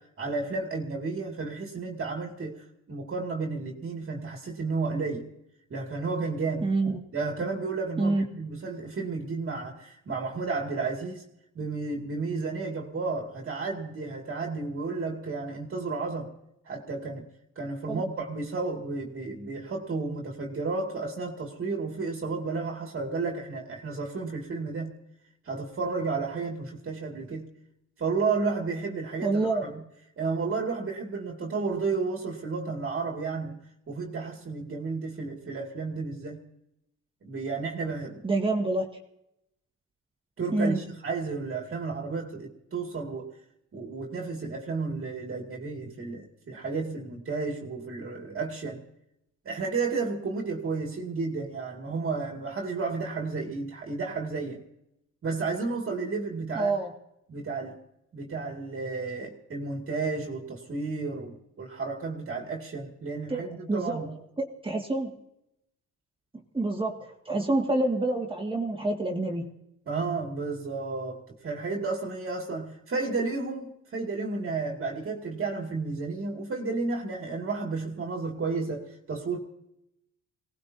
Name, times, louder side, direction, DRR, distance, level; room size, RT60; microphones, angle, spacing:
voice 1, 0.2-5.3 5.7-6.7 7.1-11.3 11.5-16.3 16.7-17.3 17.6-24.9 25.4-27.5 28.0-29.8 30.2-36.4 37.2-38.3 40.4-43.3 43.7-48.8 49.4-54.6 55.2-56.8 57.3-57.8 58.1-64.2 69.9-79.4, right 4 dB, 45° right, 1 dB, 2.3 m, -32 dB
voice 2, 6.6-7.0 8.0-8.2 17.9-18.0 29.2-29.7 38.2-38.9 40.5-40.8 56.5-56.9 63.3-64.0 64.4-65.2 66.5-69.5, right 2 dB, 15° right, 1 dB, 2.1 m, -27 dB
23.5 x 18.0 x 2.8 m, 0.83 s
cardioid pair, 90°, 30 cm